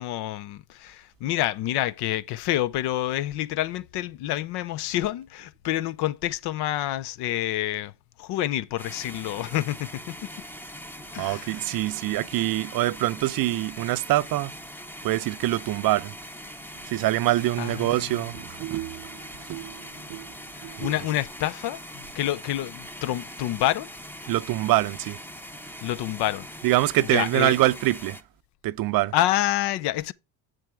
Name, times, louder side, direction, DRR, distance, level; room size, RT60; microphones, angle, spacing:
voice 1, 0.0-7.9 8.2-10.2 11.1-11.6 17.6-18.3 20.6-23.9 25.8-26.5 27.1-27.6 29.1-30.1, left 14 dB, 60° left, 0.7 m, -28 dB
sound 1, 8.8-28.2, equal, 5° left, 0.8 m, -42 dB
voice 2, 11.2-14.5 15.0-16.1 16.9-20.3 20.6-20.9 24.3-25.2 26.6-28.2 28.6-29.1, right 16 dB, 50° right, 0.6 m, -25 dB
7.8 x 7.5 x 3.6 m
supercardioid pair, 105°, 45 cm